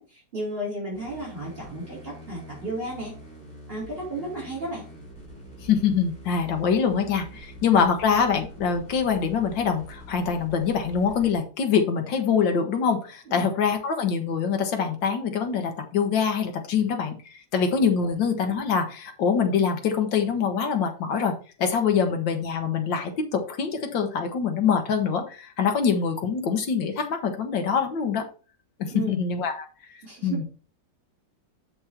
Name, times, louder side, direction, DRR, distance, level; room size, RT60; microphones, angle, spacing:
voice 1, 0.0-3.2 3.7-4.8 13.3-13.4 28.9-29.1 30.0-30.4, right 1 dB, 30° right, -5 dB, 4.1 m, -33 dB
sound 1, 0.9-11.3, right 1 dB, 20° left, 4.6 m, -45 dB
voice 2, 5.6-21.3 21.6-28.3 28.8-29.7 30.2-30.4, left 6 dB, 75° left, 4 dB, 1.9 m, -24 dB
7.2 x 5.3 x 4.5 m, 0.36 s
omnidirectional pair, 2.0 m